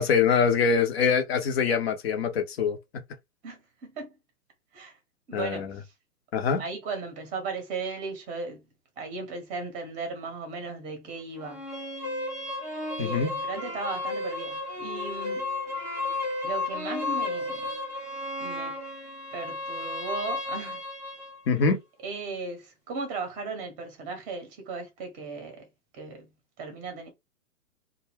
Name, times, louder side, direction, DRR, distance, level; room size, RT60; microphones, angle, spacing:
voice 1, 0.0-2.8 5.3-5.8 6.3-6.6 13.0-13.3 21.5-21.8, left 6 dB, 45° left, 0.7 m, -24 dB
voice 2, 3.4-4.1 4.7-5.0 5.3-5.9 6.6-8.7 9.0-11.7 13.0-15.5 16.4-17.7 18.4-18.7 19.3-20.8 22.0-25.7 25.9-26.3 26.6-27.1, right 4 dB, 20° right, 0.8 m, -36 dB
sound 1, 11.4-21.4, left 2 dB, 15° left, 0.3 m, -33 dB
2.3 x 2.1 x 3.3 m
hypercardioid pair, 130°, 44 cm